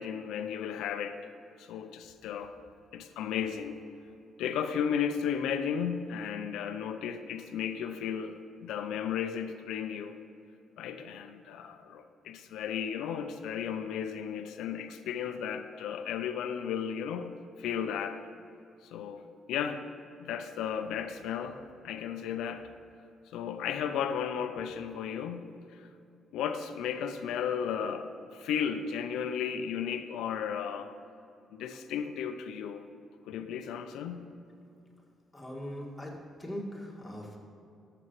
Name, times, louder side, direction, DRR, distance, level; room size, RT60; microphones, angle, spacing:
voice 1, 0.0-1.3 1.6-2.5 2.9-3.8 4.4-10.1 10.8-17.3 17.6-18.2 18.8-19.8 20.2-22.7 23.3-25.9 26.3-31.0 31.5-32.8 33.3-34.3, left 8 dB, 85° left, 8 dB, 0.5 m, -34 dB
voice 2, 35.3-37.4, equal, 10° left, -3 dB, 2.0 m, -40 dB
13.5 x 6.9 x 3.1 m, 2.7 s
cardioid pair, 90°, 0 cm